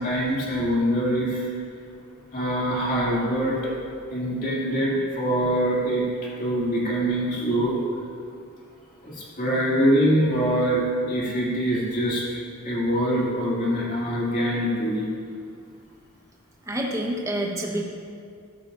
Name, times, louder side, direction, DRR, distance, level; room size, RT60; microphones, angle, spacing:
voice 1, 0.0-1.5 2.3-3.7 4.1-7.8 9.0-10.8 11.1-12.4 12.6-15.1, equal, 40° left, -5 dB, 2.5 m, -24 dB
voice 2, 16.7-17.8, right 1 dB, 15° right, -1 dB, 1.1 m, -27 dB
13.0 x 11.5 x 2.6 m, 2.3 s
head